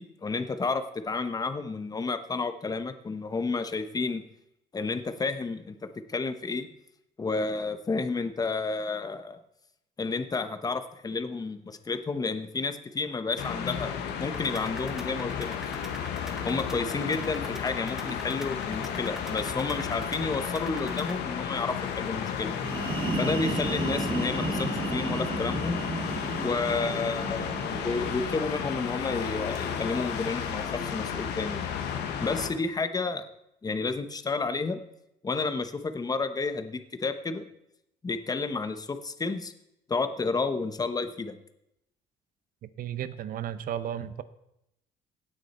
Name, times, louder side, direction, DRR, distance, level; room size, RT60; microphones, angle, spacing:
voice 1, 0.0-4.2 4.7-5.7 6.1-6.7 7.2-9.4 10.0-13.9 14.2-15.5 16.2-22.5 23.1-25.8 26.4-31.7 32.2-33.2 33.6-34.8 35.2-37.4 38.0-39.5 39.9-41.4, left 4 dB, 20° left, 10 dB, 1.0 m, -31 dB
sound 1, 13.4-32.5, left 7 dB, 80° left, 1.2 m, -33 dB
sound 2, 14.3-21.2, equal, 5° right, 1.1 m, -46 dB
sound 3, 22.5-30.1, right 2 dB, 30° right, 2.6 m, -34 dB
voice 2, 42.6-44.2, right 10 dB, 55° right, 14 dB, 0.8 m, -34 dB
17.5 x 6.4 x 4.3 m, 0.81 s
cardioid pair, 110°, 17 cm